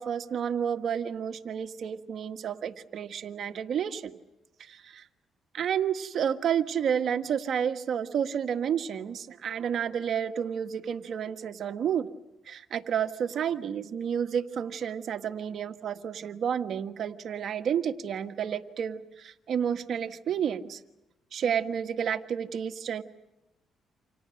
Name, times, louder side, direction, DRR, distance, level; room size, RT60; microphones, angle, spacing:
voice 1, 0.0-4.2 4.6-5.1 5.5-12.1 12.4-20.8 21.3-23.0, right 8 dB, 60° right, 7 dB, 1.6 m, -30 dB
29.0 x 27.0 x 6.5 m, 0.93 s
cardioid pair, 90°, 0 cm